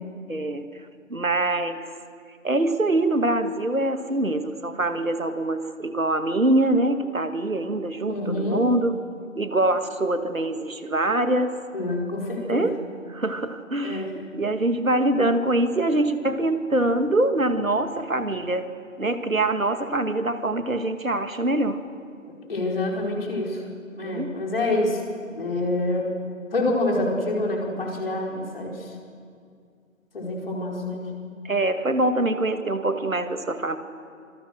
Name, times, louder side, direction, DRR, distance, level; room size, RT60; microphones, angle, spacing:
voice 1, 0.3-0.7 1.1-1.8 2.4-9.0 9.4-11.6 12.4-12.8 13.1-14.1 14.3-18.7 19.0-21.8 24.0-24.3 31.4-33.8, right 2 dB, 80° right, 9 dB, 2.0 m, -24 dB
voice 2, 8.1-8.6 11.7-12.6 13.8-14.1 22.5-23.6 23.9-25.0 25.3-26.1 26.5-28.8 30.1-31.1, left 2 dB, 45° left, -1 dB, 4.7 m, -26 dB
26.0 x 21.5 x 6.5 m, 2.3 s
figure-of-eight pair, 150°, 40 cm